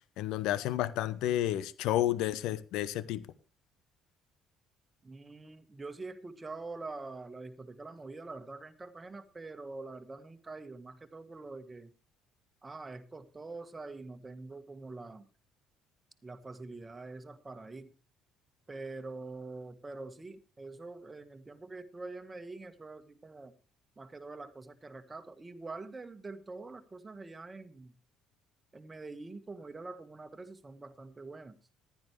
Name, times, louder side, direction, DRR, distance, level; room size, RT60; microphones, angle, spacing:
voice 1, 0.2-3.2, left 13 dB, 60° left, 0.7 m, -31 dB
voice 2, 5.0-11.9 12.6-15.3 16.2-17.9 18.7-23.5 24.0-27.9 28.7-31.5, right 3 dB, 20° right, 1.5 m, -45 dB
15.0 x 11.0 x 3.3 m
figure-of-eight pair, 50°, 0 cm